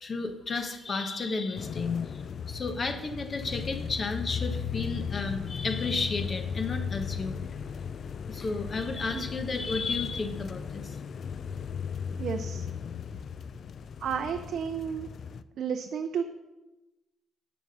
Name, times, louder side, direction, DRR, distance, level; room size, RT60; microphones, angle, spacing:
voice 1, 0.0-1.9 2.5-7.4 8.3-11.0, left 3 dB, 40° left, 6 dB, 1.3 m, -32 dB
sound 1, 1.6-15.4, left 6 dB, 55° left, 0.4 m, -36 dB
voice 2, 12.2-12.7 14.0-15.1 15.6-16.2, right 7 dB, 65° right, 6 dB, 0.5 m, -32 dB
7.9 x 7.2 x 5.4 m, 1.1 s
cardioid pair, 90°, 0 cm